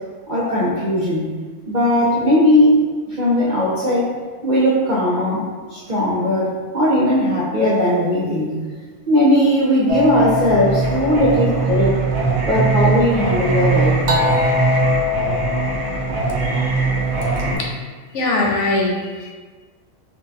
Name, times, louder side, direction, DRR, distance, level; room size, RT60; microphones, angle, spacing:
voice 1, 0.3-1.2 1.7-2.8 3.1-4.1 4.4-5.4 5.7-8.5 9.1-12.0 12.5-14.0 17.5-17.6, left 1 dB, 50° right, -8 dB, 0.6 m, -18 dB
Singing, 9.9-17.6, right 2 dB, 85° right, 1.1 m, -20 dB
voice 2, 16.4-16.7 17.6-17.7 18.1-19.3, left 2 dB, 70° left, -1 dB, 0.9 m, -22 dB
4.5 x 2.2 x 2.6 m, 1.4 s
omnidirectional pair, 1.4 m